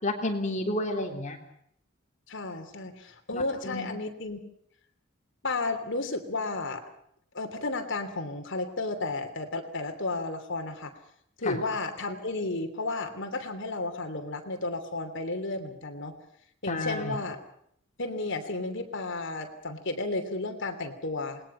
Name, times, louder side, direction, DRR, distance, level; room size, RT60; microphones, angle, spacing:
voice 1, 0.0-1.4 3.3-3.9 11.4-11.6 16.7-17.2, left 1 dB, 35° left, 3 dB, 3.3 m, -31 dB
voice 2, 2.3-4.4 5.4-6.8 7.3-10.9 11.4-16.2 16.6-17.4 18.0-21.4, left 2 dB, 60° left, 6 dB, 3.0 m, -33 dB
28.0 x 20.5 x 5.7 m, 0.69 s
head